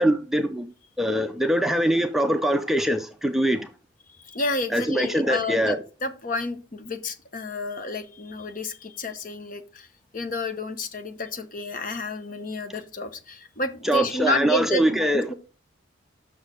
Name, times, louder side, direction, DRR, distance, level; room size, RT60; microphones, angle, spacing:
voice 1, 0.0-3.7 4.7-5.8 13.8-15.3, equal, ahead, 0.4 m, -23 dB
voice 2, 4.1-9.9 10.1-15.3, left 2 dB, 45° left, 0.9 m, -30 dB
6.4 x 6.3 x 5.0 m
head